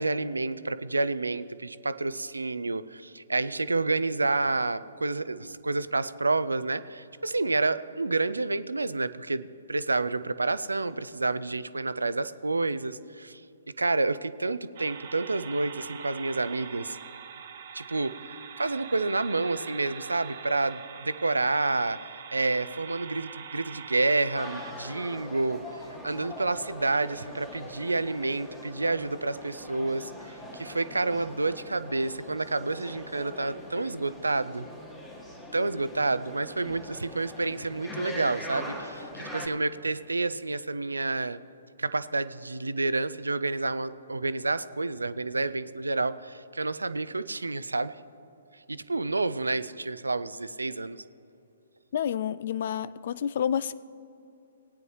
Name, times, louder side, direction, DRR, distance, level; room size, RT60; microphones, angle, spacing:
voice 1, 0.0-13.4 13.8-17.0 17.7-18.2 18.6-22.0 22.3-25.6 26.0-34.7 35.5-41.4 41.8-47.9 48.7-51.0, right 3 dB, 75° right, 15 dB, 0.4 m, -29 dB
sound 1, 14.8-24.7, right 7 dB, 50° right, 0.9 m, -43 dB
sound 2, 24.4-39.5, left 1 dB, 5° left, 1.4 m, -42 dB
voice 2, 51.9-53.7, left 9 dB, 50° left, 18 dB, 0.3 m, -29 dB
19.0 x 9.2 x 3.1 m, 2.7 s
figure-of-eight pair, 125°, 0 cm